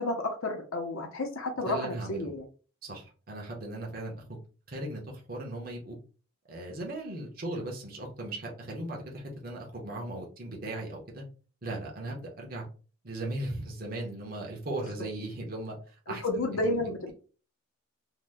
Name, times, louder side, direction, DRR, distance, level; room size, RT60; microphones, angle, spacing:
voice 1, 0.0-2.4 16.2-17.1, left 2 dB, 85° left, 3 dB, 0.7 m, -31 dB
voice 2, 1.6-2.3 2.8-4.2 4.7-6.0 6.5-11.2 11.6-12.7 13.0-16.8, right 1 dB, 45° right, -1 dB, 0.8 m, -38 dB
2.8 x 2.1 x 3.4 m, 0.37 s
head